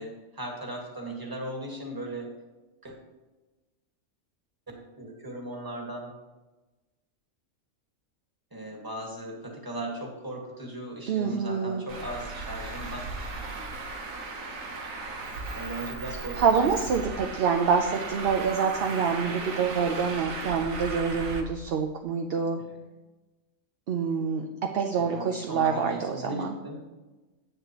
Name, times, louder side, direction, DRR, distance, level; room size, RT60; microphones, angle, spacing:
voice 1, 0.0-2.3 2.8-3.0 4.7-6.1 8.5-13.0 15.5-16.8 22.7-22.8 25.0-26.8, right 1 dB, 15° right, 0 dB, 1.7 m, -37 dB
voice 2, 11.1-11.9 16.1-22.6 23.9-26.5, right 6 dB, 55° right, 3 dB, 0.7 m, -26 dB
Traffic noise roadway noise, 11.9-21.4, right 3 dB, 75° right, 1.4 m, -36 dB
10.0 x 8.6 x 3.0 m, 1.1 s
omnidirectional pair, 1.4 m